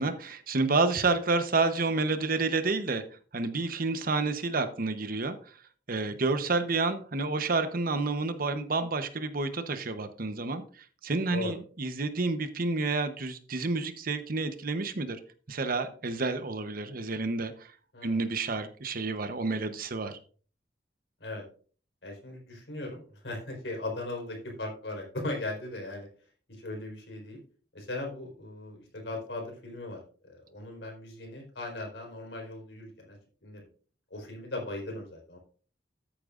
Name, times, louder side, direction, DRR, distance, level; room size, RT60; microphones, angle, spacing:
voice 1, 0.0-3.0 3.3-5.3 5.9-15.2 15.5-17.7 18.0-20.2, right 3 dB, 55° right, 10 dB, 1.0 m, -29 dB
voice 2, 17.9-18.3 21.2-21.4 22.0-26.1 26.5-27.4 27.7-33.6 34.1-35.4, left 2 dB, 75° left, 1 dB, 4.5 m, -38 dB
14.0 x 8.5 x 2.5 m, 0.42 s
head